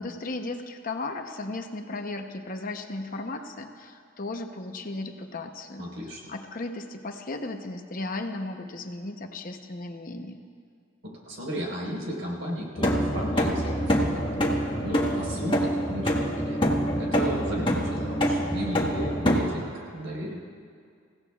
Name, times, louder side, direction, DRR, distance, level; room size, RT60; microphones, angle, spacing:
voice 1, 0.0-5.9 6.3-10.4, left 2 dB, 45° left, 5 dB, 0.9 m, -35 dB
voice 2, 5.8-6.3 11.0-16.7 17.0-19.6 19.9-20.4, equal, 75° right, -3 dB, 4.4 m, -35 dB
sound 1, 12.8-19.4, equal, 25° left, 1.5 m, -25 dB
27.5 x 16.0 x 2.4 m, 2.1 s
head